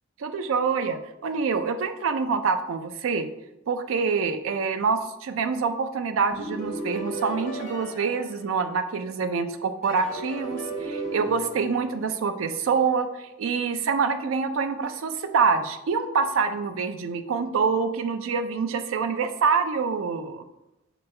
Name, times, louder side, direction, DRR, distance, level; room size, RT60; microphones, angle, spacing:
voice 1, 0.2-3.3 3.7-20.4, right 5 dB, 75° right, 9 dB, 0.4 m, -26 dB
sound 1, 6.3-9.2 9.8-12.7, right 2 dB, 35° left, 1.2 m, -35 dB
5.9 x 2.2 x 3.2 m, 0.90 s
head